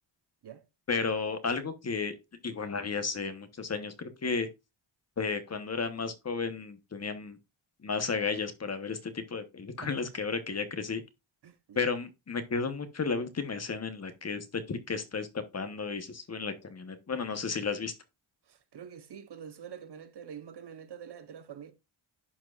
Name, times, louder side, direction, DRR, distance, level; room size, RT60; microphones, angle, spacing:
voice 1, 0.9-2.1 2.4-4.5 5.2-7.4 7.8-11.0 11.7-15.3 15.5-17.9, left 4 dB, 30° left, 1.0 m, -33 dB
voice 2, 11.4-11.8 18.5-21.7, right 8 dB, 55° right, 1.0 m, -46 dB
11.0 x 4.5 x 2.4 m
wide cardioid pair, 125°, 48 cm